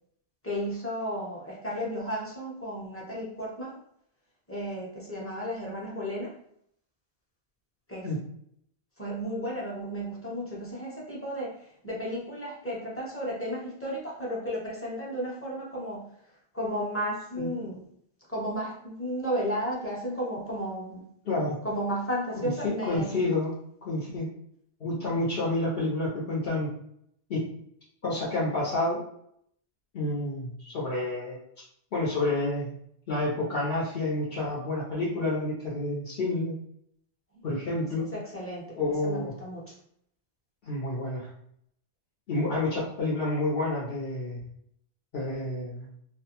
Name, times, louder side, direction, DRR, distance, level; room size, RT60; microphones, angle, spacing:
voice 1, 0.4-3.8 4.5-6.3 7.9-8.1 9.0-16.1 16.5-17.8 18.3-21.0 21.6-23.2 37.3-37.4 38.0-38.8 39.0-39.7, equal, 15° left, -6 dB, 0.7 m, -33 dB
voice 2, 21.2-21.6 22.6-23.5 23.8-24.3 24.8-26.7 27.3-27.4 28.0-29.0 29.9-31.4 31.9-32.7 33.1-36.5 37.4-38.1 38.8-39.3 40.6-41.3 42.3-44.4 45.1-45.9, left 2 dB, 60° left, -7 dB, 0.9 m, -29 dB
2.4 x 2.2 x 2.9 m, 0.70 s
omnidirectional pair, 1.2 m